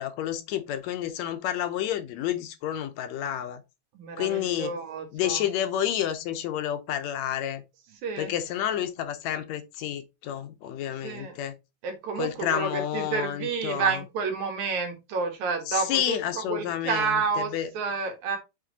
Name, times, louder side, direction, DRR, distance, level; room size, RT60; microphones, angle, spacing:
voice 1, 0.0-3.6 4.2-4.8 5.1-7.6 8.2-11.5 12.2-14.0 15.7-17.7, left 11 dB, 75° left, 1.9 m, -30 dB
voice 2, 3.9-5.4 8.0-8.3 11.0-11.3 11.8-18.4, right 5 dB, 80° right, 3.0 m, -30 dB
7.6 x 3.6 x 4.0 m
omnidirectional pair, 3.4 m